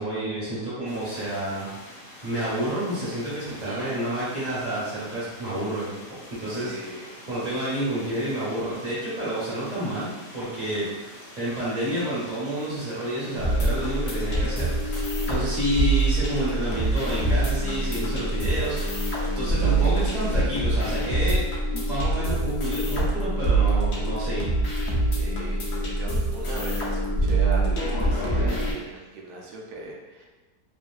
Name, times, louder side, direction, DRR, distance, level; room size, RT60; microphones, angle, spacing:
voice 1, 0.0-1.7 2.2-5.9 6.4-6.7 7.3-10.8 11.4-15.0 15.3-21.4 21.7-24.5, right 1 dB, 35° right, -9 dB, 0.8 m, -29 dB
sound 1, 0.8-20.4, left 1 dB, 40° left, 1.0 m, -46 dB
voice 2, 3.5-4.0 6.5-7.2 15.2-15.5 25.1-30.3, right 3 dB, 70° right, -1 dB, 1.0 m, -38 dB
sound 2, 13.4-28.7, right 2 dB, 70° left, 0.6 m, -25 dB
3.0 x 2.6 x 2.3 m, 1.2 s
omnidirectional pair, 1.8 m